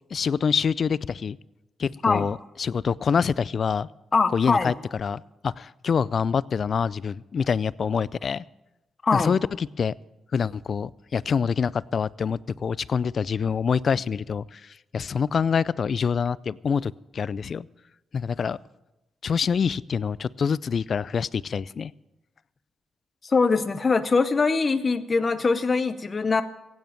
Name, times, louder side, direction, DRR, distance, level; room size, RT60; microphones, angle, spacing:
voice 1, 0.1-1.4 1.8-3.9 4.3-8.4 9.1-9.9 10.3-17.7 18.1-18.6 19.2-21.9, left 6 dB, 60° left, 22 dB, 0.4 m, -26 dB
voice 2, 4.1-4.7 9.0-9.3 23.2-26.4, left 4 dB, 40° left, 11 dB, 0.8 m, -22 dB
16.0 x 9.4 x 7.6 m, 0.98 s
supercardioid pair, 55°, 0 cm